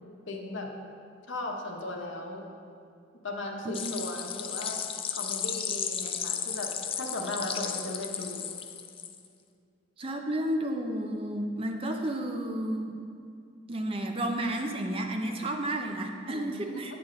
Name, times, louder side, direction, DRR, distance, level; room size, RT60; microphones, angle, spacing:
voice 1, 0.3-0.7 1.3-2.5 3.2-4.8 5.1-8.5 16.3-17.0, left 2 dB, 80° left, 1 dB, 1.0 m, -37 dB
voice 2, 3.6-4.0 10.0-13.0 13.7-16.9, right 1 dB, 30° right, 4 dB, 0.6 m, -32 dB
sound 1, 3.7-9.3, left 8 dB, 30° left, 0.3 m, -34 dB
8.6 x 7.0 x 3.9 m, 2.3 s
head